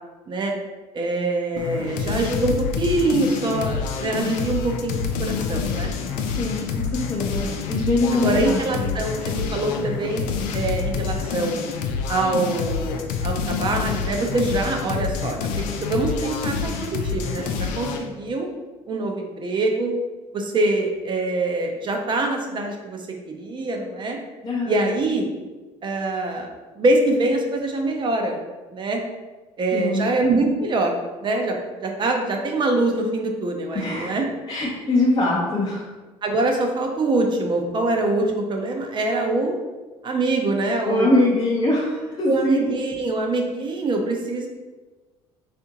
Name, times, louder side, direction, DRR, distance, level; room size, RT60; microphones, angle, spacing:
voice 1, 0.9-5.9 8.2-10.2 10.5-11.6 12.1-18.5 18.9-19.9 20.3-24.2 24.6-25.3 25.8-26.5 26.8-28.4 28.7-29.0 29.6-30.9 31.2-34.3 36.2-39.6 40.0-41.1 42.3-44.5, right 2 dB, 35° right, 2 dB, 0.6 m, -24 dB
sound 1, 1.6-18.1, left 6 dB, 70° left, 0.4 m, -27 dB
voice 2, 6.2-8.9 24.4-24.9 29.7-30.1 33.7-34.1 34.5-35.9 40.8-42.7, left 1 dB, 30° left, -5 dB, 0.7 m, -23 dB
3.5 x 2.5 x 2.8 m, 1.2 s
supercardioid pair, 90°, 13 cm